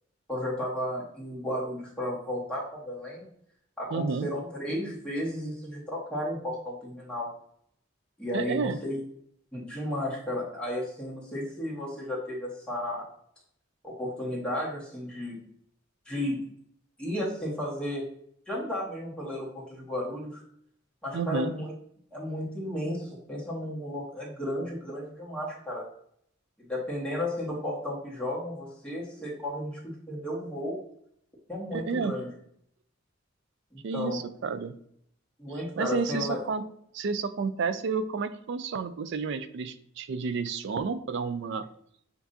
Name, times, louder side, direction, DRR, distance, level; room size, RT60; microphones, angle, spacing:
voice 1, 0.3-3.3 3.8-7.3 8.2-9.0 9.5-13.0 13.8-15.4 16.1-16.4 17.0-18.0 18.5-20.4 21.0-21.7 22.1-25.8 26.6-30.8 31.5-32.3 33.7-34.2 35.4-36.4, left 1 dB, 5° left, -5 dB, 1.4 m, -33 dB
voice 2, 3.9-4.3 8.3-8.8 21.1-21.5 31.7-32.1 33.8-34.8 35.8-36.6 36.9-41.6, right 5 dB, 60° right, 12 dB, 0.4 m, -30 dB
7.1 x 2.6 x 2.6 m, 0.68 s
head